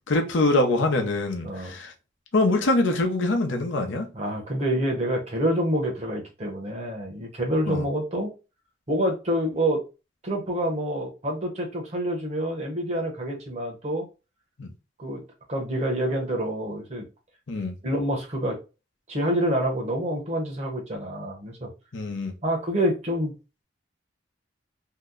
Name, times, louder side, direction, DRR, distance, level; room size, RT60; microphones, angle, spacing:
voice 1, 0.1-1.9 2.3-4.1 7.7-7.8 14.6-14.7 17.5-17.8 21.9-22.3, left 2 dB, 80° left, 0.7 m, -24 dB
voice 2, 1.4-1.8 4.1-8.3 8.9-9.8 10.2-14.1 15.0-15.2 15.5-17.0 17.8-18.6 19.1-21.7 22.4-23.3, right 1 dB, 35° right, 0.8 m, -27 dB
2.8 x 2.1 x 3.5 m
head